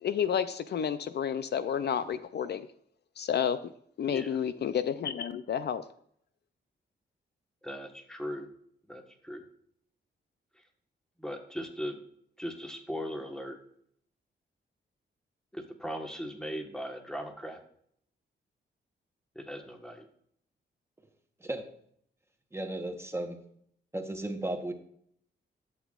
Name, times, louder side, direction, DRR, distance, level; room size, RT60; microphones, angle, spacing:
voice 1, 0.0-2.7 3.2-3.6 4.0-5.8, left 8 dB, 60° left, 12 dB, 0.4 m, -30 dB
voice 2, 7.6-8.5 8.9-9.4 11.2-11.9 12.4-13.6 15.5-17.6 19.3-20.0, equal, 5° left, 3 dB, 1.3 m, -38 dB
voice 3, 22.5-23.4 23.9-24.7, right 1 dB, 15° right, 5 dB, 1.0 m, -34 dB
11.5 x 8.0 x 2.4 m, 0.66 s
wide cardioid pair, 130°, 19 cm